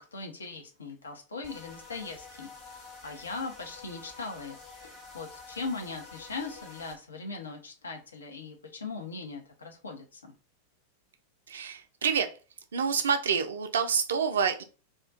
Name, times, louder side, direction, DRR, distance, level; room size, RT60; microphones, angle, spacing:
voice 1, 0.0-10.3, left 3 dB, 75° left, 3 dB, 0.5 m, -40 dB
sound 1, 1.4-7.0, left 4 dB, 30° left, 1.0 m, -48 dB
voice 2, 11.5-12.4 12.7-14.6, right 6 dB, 65° right, 7 dB, 0.3 m, -27 dB
2.3 x 2.1 x 2.5 m, 0.35 s
figure-of-eight pair, 90°, 0 cm